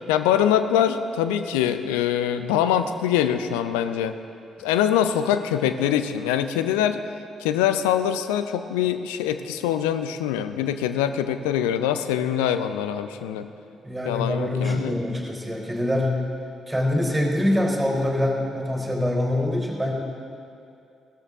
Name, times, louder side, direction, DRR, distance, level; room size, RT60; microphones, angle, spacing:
voice 1, 0.1-4.2 4.6-7.0 7.4-13.5 14.0-14.9, left 10 dB, 70° left, 10 dB, 0.5 m, -23 dB
voice 2, 13.8-16.2 16.7-19.9, left 1 dB, 10° right, -1 dB, 3.7 m, -24 dB
16.5 x 13.0 x 3.6 m, 2.5 s
figure-of-eight pair, 40°, 0 cm